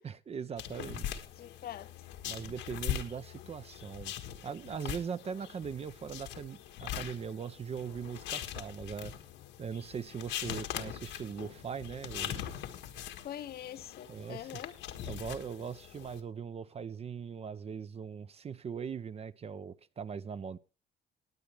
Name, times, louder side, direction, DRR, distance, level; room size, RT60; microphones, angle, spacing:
voice 1, 0.0-1.2 2.3-4.1 4.4-9.1 9.6-12.5 14.1-14.5 15.1-20.6, right 6 dB, 35° right, 0.6 m, -40 dB
sound 1, 0.6-16.2, left 10 dB, 90° left, 1.6 m, -42 dB
voice 2, 1.4-1.9 13.2-14.9, left 11 dB, 55° left, 0.8 m, -44 dB
20.0 x 8.5 x 3.3 m
cardioid pair, 120°, 19 cm